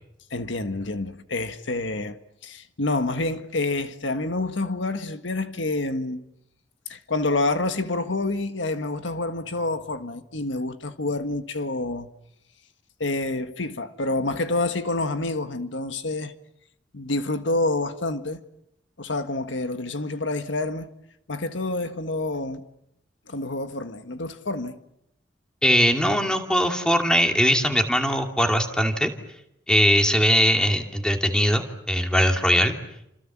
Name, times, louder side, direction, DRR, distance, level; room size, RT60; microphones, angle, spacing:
voice 1, 0.3-6.2 6.9-12.1 13.0-16.3 16.9-18.4 19.0-20.9 21.3-22.7 23.3-24.8, left 2 dB, 85° left, 1.6 m, -28 dB
voice 2, 25.6-29.1 29.7-32.7, equal, 5° left, 2.6 m, -21 dB
29.5 x 27.0 x 7.5 m
head